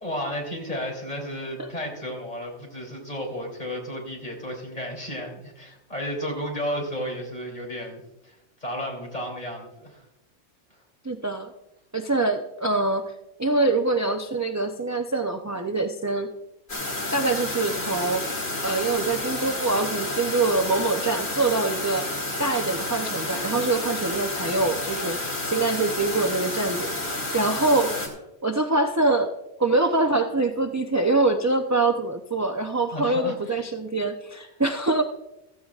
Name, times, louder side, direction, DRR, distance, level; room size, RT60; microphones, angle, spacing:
voice 1, 0.0-10.0 32.9-33.6, equal, 35° left, 0 dB, 3.3 m, -33 dB
voice 2, 11.0-11.5 11.9-13.1 13.4-16.3 17.1-18.3 18.6-22.1 22.4-27.9 28.4-29.3 29.6-35.0, right 2 dB, 25° right, 4 dB, 0.4 m, -24 dB
sound 1, 16.7-28.1, left 2 dB, 60° left, 2.7 m, -30 dB
15.0 x 14.0 x 2.4 m, 0.91 s
omnidirectional pair, 1.2 m